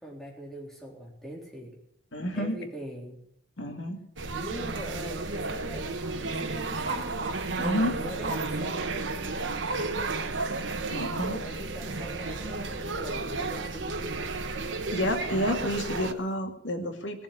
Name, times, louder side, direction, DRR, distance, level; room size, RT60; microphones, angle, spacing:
voice 1, 0.0-1.8 2.3-3.2 4.3-7.2 8.0-9.5 11.3-14.5, right 1 dB, ahead, -3 dB, 3.8 m, -42 dB
voice 2, 2.1-2.6 3.6-4.0 7.6-8.0 10.9-11.4 14.9-17.2, equal, 90° left, 4 dB, 2.4 m, -30 dB
sound 1, 4.2-16.1, right 3 dB, 85° right, 1.3 m, -32 dB
sound 2, 4.7-16.3, right 3 dB, 35° right, 3.4 m, -46 dB
19.0 x 7.4 x 9.8 m, 0.75 s
head